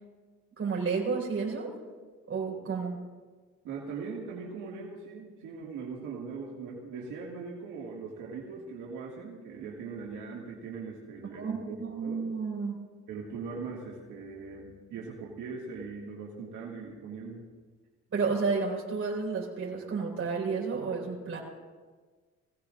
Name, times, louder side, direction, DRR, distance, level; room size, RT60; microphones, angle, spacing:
voice 1, 0.6-1.7 2.3-3.0 11.4-12.8 18.1-21.4, right 4 dB, 45° right, -3 dB, 5.1 m, -31 dB
voice 2, 3.6-12.2 13.1-17.4, right 5 dB, 90° right, -4 dB, 2.2 m, -40 dB
21.5 x 17.0 x 2.6 m, 1.4 s
cardioid pair, 90°, 30 cm